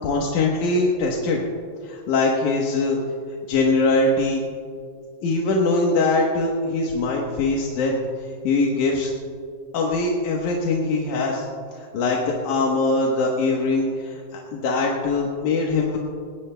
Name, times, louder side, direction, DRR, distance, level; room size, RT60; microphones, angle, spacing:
voice 1, 0.0-1.4 1.8-3.0 3.5-4.4 5.2-7.9 8.4-9.1 9.7-11.5 11.7-16.0, left 3 dB, 85° left, -2 dB, 2.7 m, -22 dB
20.5 x 17.5 x 2.2 m, 2.2 s
omnidirectional pair, 3.4 m